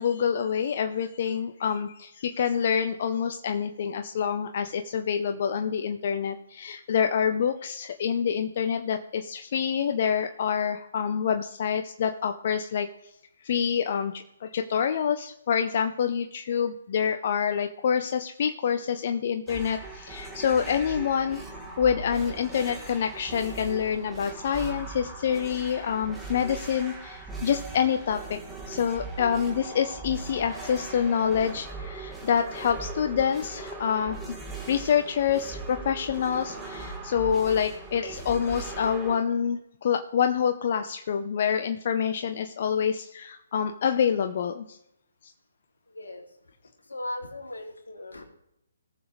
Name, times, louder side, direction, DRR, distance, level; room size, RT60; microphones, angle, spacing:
voice 1, 0.0-12.9 13.4-21.4 21.8-28.4 28.7-34.2 34.7-44.8 45.2-45.3, left 7 dB, 50° left, 7 dB, 0.7 m, -27 dB
sound 1, 19.5-39.2, right 3 dB, 5° right, 2.0 m, -39 dB
voice 2, 45.9-46.3 46.8-48.3, left 1 dB, 85° left, 2 dB, 2.8 m, -38 dB
19.0 x 7.1 x 3.2 m, 0.83 s
figure-of-eight pair, 140°, 0 cm